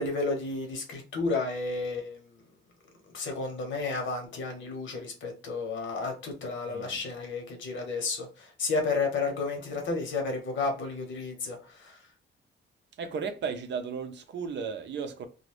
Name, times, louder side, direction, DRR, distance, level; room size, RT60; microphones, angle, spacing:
voice 1, 0.0-2.2 3.1-12.0, left 3 dB, 70° left, 1.0 m, -32 dB
voice 2, 6.7-7.0 13.0-15.3, right 6 dB, 60° right, 0.5 m, -35 dB
2.5 x 2.2 x 3.2 m
wide cardioid pair, 155°, 20 cm